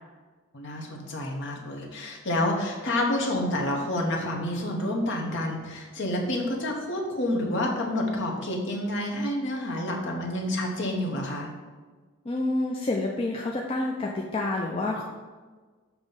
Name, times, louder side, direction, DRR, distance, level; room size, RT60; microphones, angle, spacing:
voice 1, 0.5-11.5, left 1 dB, 55° left, 0 dB, 1.0 m, -29 dB
voice 2, 12.2-15.0, left 2 dB, 25° left, -1 dB, 0.4 m, -28 dB
7.2 x 3.0 x 5.4 m, 1.4 s
head